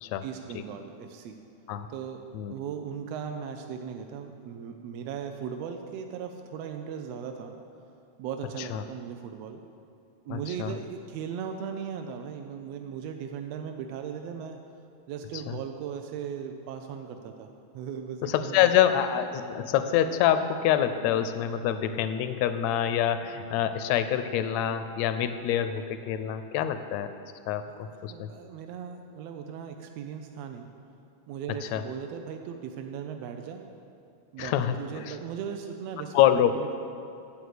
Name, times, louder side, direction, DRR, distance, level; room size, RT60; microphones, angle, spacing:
voice 1, 0.2-1.4 1.9-2.2 2.5-7.5 8.2-9.6 10.2-14.6 15.1-17.5 17.7-18.7 27.8-30.7 31.3-33.7 34.3-36.1 36.5-36.7, right 7 dB, 80° right, 5 dB, 1.5 m, -38 dB
voice 2, 10.3-10.7 15.5-15.6 18.2-27.1 27.5-28.3 31.7-31.8 34.4-34.7 36.1-36.7, left 10 dB, 80° left, 10 dB, 1.6 m, -26 dB
9.4 x 7.3 x 8.2 m, 2.5 s
omnidirectional pair, 3.5 m